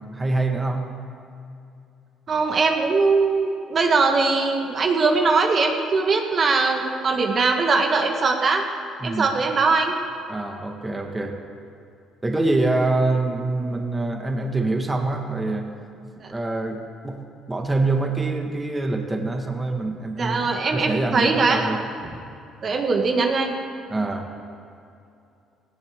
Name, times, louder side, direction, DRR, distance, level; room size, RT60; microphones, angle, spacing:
voice 1, 0.1-0.9 9.0-9.3 10.3-11.4 12.2-15.7 16.3-17.2 17.5-22.3 23.9-24.3, right 2 dB, 15° right, 2 dB, 1.6 m, -25 dB
voice 2, 2.3-8.6 9.0-10.0 16.2-16.3 20.2-21.8 22.6-23.5, right 4 dB, 40° right, 3 dB, 1.5 m, -21 dB
18.0 x 17.5 x 3.7 m, 2.6 s
cardioid pair, 110°, 0 cm